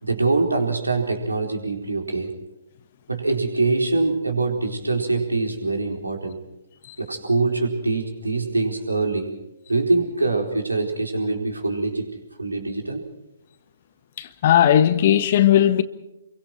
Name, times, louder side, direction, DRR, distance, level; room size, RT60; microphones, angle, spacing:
voice 1, 0.0-2.4 3.1-6.4 7.0-9.4 9.7-13.0, right 3 dB, 75° right, 4.3 m, -24 dB
voice 2, 14.2-15.8, left 11 dB, 40° left, 1.3 m, -17 dB
28.5 x 23.5 x 4.6 m
figure-of-eight pair, 125°, 0 cm